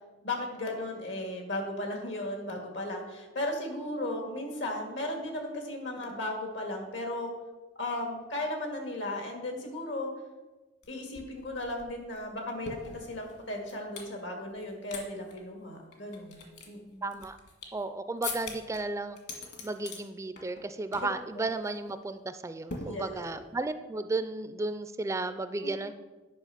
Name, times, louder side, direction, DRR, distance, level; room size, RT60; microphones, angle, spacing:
voice 1, 0.2-7.3 7.8-10.1 10.9-17.0 22.8-23.2 25.6-25.7, left 1 dB, 80° left, 2 dB, 2.0 m, -36 dB
sound 1, 10.8-10.9 11.1-14.1 14.6-15.0 15.3-15.4 15.9-17.8 18.2-18.8 19.2-20.0 20.4-20.7 20.9-21.2 21.5-21.7 22.7-23.5, left 3 dB, 60° left, 1.7 m, -42 dB
voice 2, 17.0-17.4 17.7-19.2 19.6-25.9, right 2 dB, 15° right, 11 dB, 0.3 m, -34 dB
9.8 x 5.2 x 5.8 m, 1.2 s
head